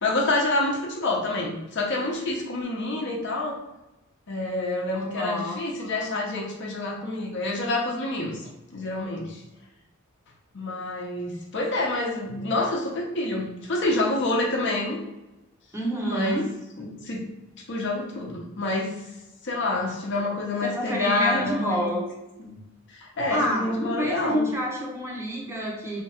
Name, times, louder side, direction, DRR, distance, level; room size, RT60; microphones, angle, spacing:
voice 1, 0.0-3.6 4.3-9.4 10.5-15.0 16.1-16.4 16.8-17.2 17.7-18.9 19.4-21.9 22.4-22.6 22.9-24.5, left 2 dB, 55° left, -1 dB, 0.8 m, -27 dB
voice 2, 4.9-5.6 15.7-16.5 20.6-22.0 23.3-26.0, equal, 10° right, -2 dB, 0.7 m, -28 dB
2.9 x 2.3 x 4.2 m, 0.97 s
head